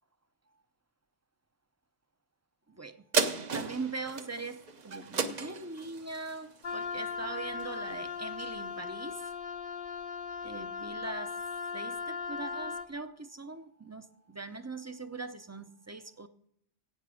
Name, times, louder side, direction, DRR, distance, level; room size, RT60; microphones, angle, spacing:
sound 1, 3.1-7.9 8.4-8.5, right 5 dB, 45° right, 0.9 m, -34 dB
voice 1, 3.5-9.2 10.4-11.3 11.7-16.3, right 3 dB, 20° right, 0.5 m, -41 dB
Wind instrument woodwind instrument, 6.6-12.9, left 5 dB, 55° left, 0.9 m, -38 dB
17.0 x 6.0 x 5.0 m
omnidirectional pair, 1.1 m